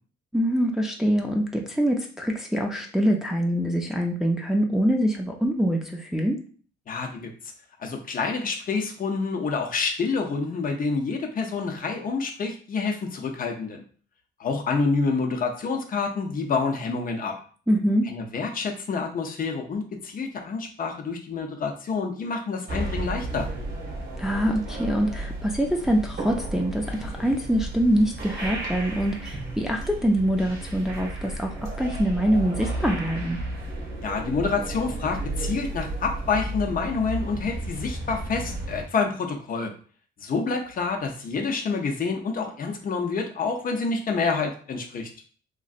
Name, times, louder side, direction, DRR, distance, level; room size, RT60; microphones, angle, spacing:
voice 1, 0.3-6.4 17.7-18.1 24.2-33.4, equal, ahead, 0 dB, 0.4 m, -24 dB
voice 2, 6.9-7.3 7.8-13.8 14.4-17.3 18.0-23.5 34.0-39.7 40.2-45.1, left 4 dB, 45° left, 3 dB, 0.6 m, -28 dB
sound 1, 22.7-38.9, right 1 dB, 55° right, 1.1 m, -33 dB
3.0 x 2.5 x 2.4 m, 0.42 s
cardioid pair, 90°, 20 cm